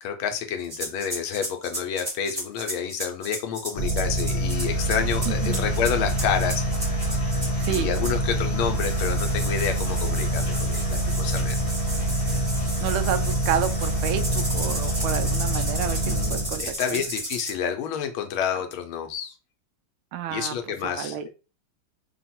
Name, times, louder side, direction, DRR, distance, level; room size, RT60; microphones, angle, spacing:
voice 1, 0.0-6.7 7.7-11.6 11.8-11.9 16.0-19.3 20.3-21.3, left 8 dB, 80° left, 1.5 m, -29 dB
sound 1, 0.6-8.3 8.7-17.5, right 1 dB, 15° right, 1.0 m, -34 dB
sound 2, 3.7-16.7, right 1 dB, 35° left, 1.0 m, -26 dB
voice 2, 5.3-5.7 7.6-7.9 12.8-17.0 20.1-20.6 21.0-21.3, right 9 dB, 80° right, 1.4 m, -30 dB
3.7 x 2.4 x 4.2 m
omnidirectional pair, 2.3 m